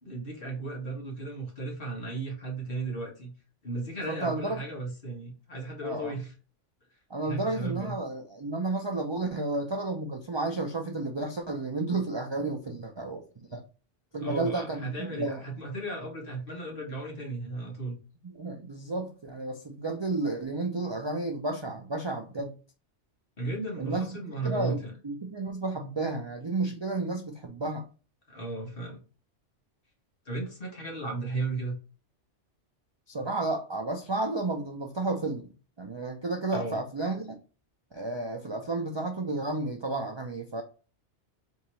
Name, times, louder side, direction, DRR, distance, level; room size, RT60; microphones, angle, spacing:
voice 1, 0.0-3.3 3.6-6.3 7.2-7.9 14.2-18.0 23.4-24.9 28.3-29.0 30.2-31.7 36.5-36.8, right 2 dB, 50° left, 1.5 m, -35 dB
voice 2, 4.1-4.6 5.8-6.1 7.1-13.6 14.1-15.4 18.2-22.5 23.8-24.1 24.4-27.8 33.1-35.4 35.8-37.4 37.9-40.6, right 2 dB, 40° right, 0.4 m, -32 dB
3.5 x 2.9 x 4.2 m
omnidirectional pair, 1.2 m